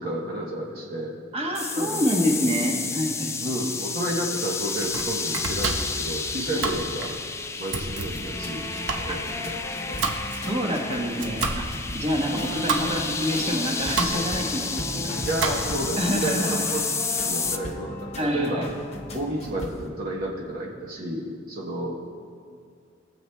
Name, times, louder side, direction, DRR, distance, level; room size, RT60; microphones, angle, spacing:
voice 1, 0.0-1.1 1.7-2.2 3.4-7.1 7.6-8.7 9.0-10.0 15.2-16.8 17.2-18.7 19.1-22.0, right 1 dB, 50° right, -3 dB, 0.9 m, -31 dB
voice 2, 1.3-3.5 6.6-6.7 9.1-9.2 10.3-11.7 11.9-15.2 16.0-16.6 18.2-18.7, equal, 30° right, 0 dB, 1.2 m, -27 dB
sound 1, 1.6-17.6, left 4 dB, 15° left, 0.4 m, -31 dB
Domestic sounds home sounds, 4.6-15.9, right 3 dB, 80° right, 1.0 m, -32 dB
sound 2, 8.0-19.9, left 1 dB, 35° left, 1.0 m, -37 dB
20.5 x 7.6 x 2.2 m, 2.3 s
head